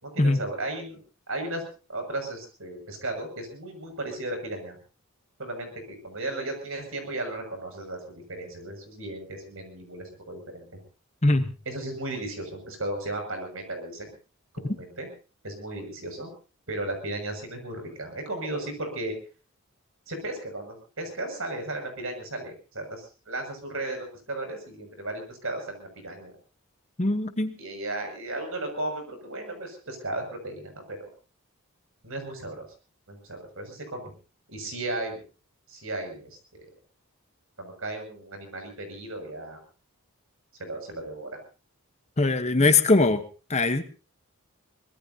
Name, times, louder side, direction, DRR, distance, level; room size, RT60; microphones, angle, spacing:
voice 1, 0.0-1.0 1.3-1.6 1.9-4.8 5.4-10.8 11.6-14.2 14.5-15.1 15.4-16.3 16.7-19.1 20.1-26.3 27.6-31.1 32.0-32.7 33.1-34.1 34.5-35.2 35.7-36.7 37.6-39.6 40.6-41.4, right 2 dB, 65° right, 5 dB, 6.6 m, -35 dB
voice 2, 27.0-27.5 42.2-43.2 43.5-43.8, left 2 dB, 30° left, 9 dB, 1.1 m, -21 dB
24.0 x 20.0 x 2.8 m, 0.35 s
head